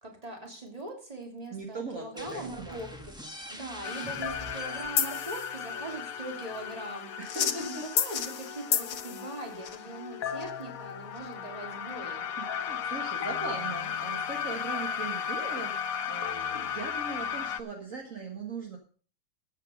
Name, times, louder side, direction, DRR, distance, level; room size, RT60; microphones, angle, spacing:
voice 1, 0.0-7.1 7.4-12.3, right 2 dB, 20° right, 1 dB, 3.2 m, -41 dB
voice 2, 1.5-2.8 3.2-3.3 7.2-7.8 12.4-18.8, right 3 dB, 50° right, 2 dB, 2.1 m, -39 dB
sound 1, 2.2-7.6, equal, 5° right, 1.3 m, -46 dB
sound 2, 3.8-17.6, left 8 dB, 60° left, 1.2 m, -33 dB
13.5 x 8.4 x 5.1 m, 0.39 s
omnidirectional pair, 1.8 m